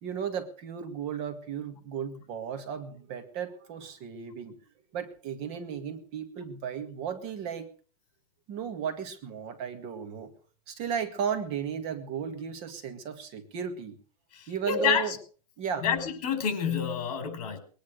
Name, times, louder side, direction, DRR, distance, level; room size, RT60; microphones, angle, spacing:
voice 1, 0.0-4.5 4.9-7.7 8.5-10.3 10.7-13.9 14.5-15.2 15.6-15.9, right 7 dB, 30° right, 8 dB, 1.9 m, -35 dB
voice 2, 14.7-15.0 15.8-17.6, left 7 dB, 55° left, 8 dB, 5.1 m, -27 dB
21.0 x 10.5 x 6.6 m, 0.42 s
supercardioid pair, 170°, 20 cm